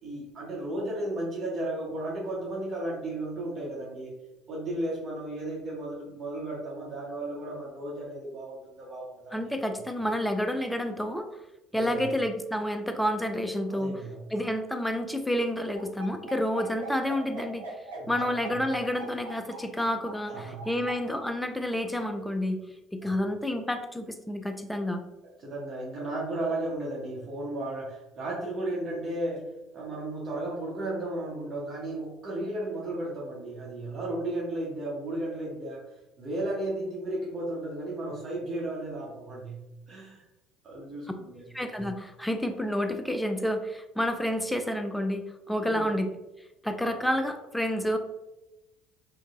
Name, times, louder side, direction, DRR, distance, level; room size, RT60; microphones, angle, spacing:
voice 1, 0.0-4.1 4.5-9.4 9.7-9.8 11.7-12.1 13.7-14.3 18.0-18.6 20.3-20.8 23.0-23.1 25.4-35.8 36.2-40.2 40.6-41.5 45.6-45.9, right 1 dB, 45° right, -4 dB, 0.8 m, -34 dB
voice 2, 9.3-11.3 11.7-14.0 14.3-17.6 18.1-22.6 22.9-25.0 41.5-46.1 46.6-48.0, equal, 5° left, 6 dB, 0.4 m, -29 dB
sound 1, 15.7-21.0, right 2 dB, 85° right, 0.7 m, -41 dB
3.7 x 2.2 x 2.4 m, 0.96 s
hypercardioid pair, 60°, 0 cm